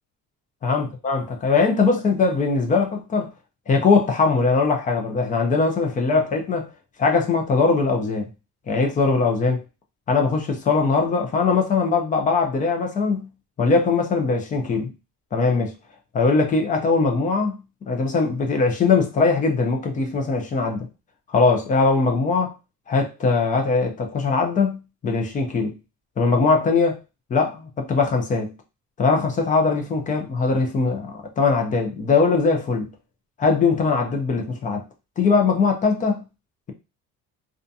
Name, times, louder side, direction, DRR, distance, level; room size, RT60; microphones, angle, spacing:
voice 1, 0.6-3.3 3.7-6.7 7.0-8.3 8.7-9.6 10.1-13.3 13.6-14.9 15.3-15.7 16.1-17.6 17.9-20.9 21.3-22.5 22.9-25.8 26.2-27.0 27.3-28.5 29.0-32.9 33.4-34.8 35.2-36.2, left 4 dB, 25° left, 0.5 m, -21 dB
2.5 x 2.3 x 2.6 m
cardioid pair, 150°, 34 cm